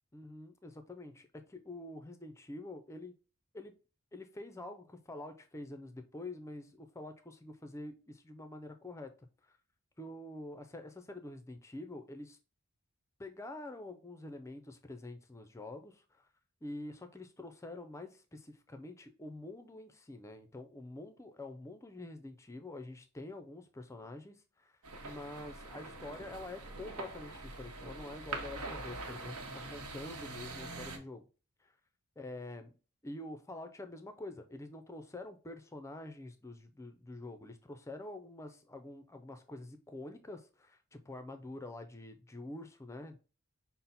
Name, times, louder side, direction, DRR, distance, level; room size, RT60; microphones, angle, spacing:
voice 1, 0.1-3.1 3.5-3.8 4.1-9.1 9.4-9.5 10.0-12.4 13.2-16.2 16.6-24.8 25.0-31.3 31.6-31.7 32.2-32.7 33.0-43.2, left 2 dB, 15° left, 0.4 m, -47 dB
sound 1, 24.8-31.0, right 3 dB, 80° right, 0.9 m, -44 dB
5.6 x 2.0 x 4.0 m
head